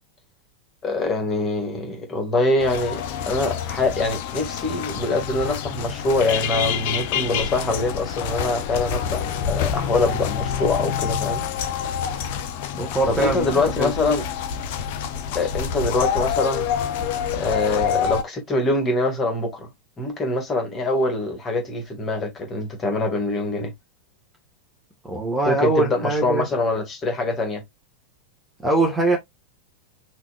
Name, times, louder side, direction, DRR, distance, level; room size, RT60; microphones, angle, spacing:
voice 1, 0.8-9.2 9.5-11.4 13.1-14.2 15.3-16.7 17.3-19.7 20.0-23.7 25.5-27.6, left 2 dB, 20° left, 2.1 m, -24 dB
sound 1, 2.6-18.2, left 8 dB, 50° left, 0.8 m, -27 dB
voice 2, 12.7-13.9 25.0-26.5 28.6-29.2, right 2 dB, 5° right, 1.6 m, -22 dB
5.9 x 2.9 x 2.4 m
figure-of-eight pair, 90°, 0 cm